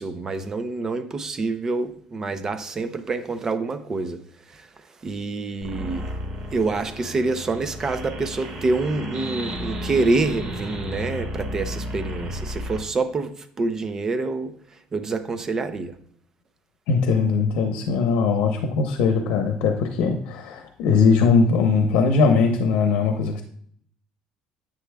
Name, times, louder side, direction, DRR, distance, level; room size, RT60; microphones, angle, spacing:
voice 1, 0.0-4.2 4.5-6.1 6.5-15.9, right 3 dB, 20° right, 10 dB, 0.5 m, -27 dB
sound 1, 5.6-12.8, equal, 40° right, 1.7 m, -33 dB
voice 2, 16.9-23.4, left 5 dB, 90° left, 5 dB, 0.8 m, -20 dB
9.8 x 8.4 x 2.3 m, 0.64 s
cardioid pair, 160°, 2 cm